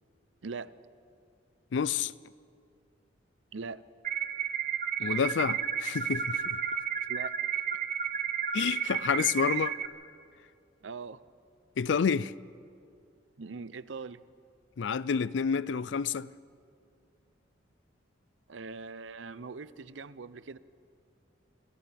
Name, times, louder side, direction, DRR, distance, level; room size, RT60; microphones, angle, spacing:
voice 1, 0.4-0.7 3.5-3.8 7.1-7.3 10.8-11.2 13.4-14.2 18.5-20.6, right 4 dB, 85° right, 0.6 m, -41 dB
voice 2, 1.7-2.1 5.0-6.6 8.5-9.7 11.8-12.3 14.8-16.3, left 6 dB, 70° left, 0.4 m, -29 dB
sound 1, 4.0-9.9, right 7 dB, 45° right, 0.9 m, -32 dB
28.5 x 26.5 x 3.5 m
head